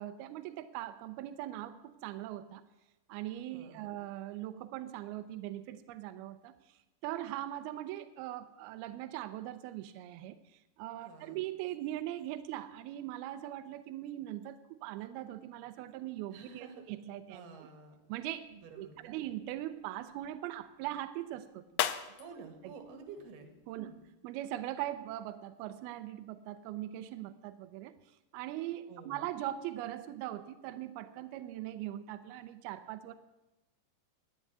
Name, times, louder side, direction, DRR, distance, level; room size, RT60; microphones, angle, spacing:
voice 1, 0.0-2.6 3.1-6.5 7.0-10.4 10.8-17.4 18.1-18.5 18.8-21.6 22.6-22.7 23.7-23.9 24.2-27.9 28.3-33.1, right 13 dB, 80° right, 10 dB, 2.2 m, -40 dB
voice 2, 3.5-3.9 11.0-11.5 16.3-16.8 17.3-18.0 18.5-19.3 22.2-24.0 28.9-29.3, right 5 dB, 65° right, 5 dB, 3.6 m, -51 dB
sound 1, 18.1-24.1, left 12 dB, 80° left, 2.8 m, -42 dB
11.0 x 10.0 x 9.5 m, 1.0 s
omnidirectional pair, 5.1 m